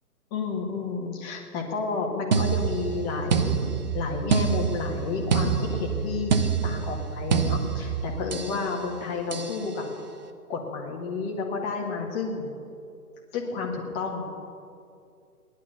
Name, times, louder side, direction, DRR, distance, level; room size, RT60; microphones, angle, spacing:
voice 1, 0.3-3.7 3.9-9.8 10.5-12.5 13.3-14.2, left 4 dB, 20° left, 0 dB, 1.8 m, -31 dB
sound 1, 2.3-8.6 9.3-9.6, right 6 dB, 30° right, 0.7 m, -26 dB
17.5 x 11.5 x 6.7 m, 2.5 s
figure-of-eight pair, 140°, 47 cm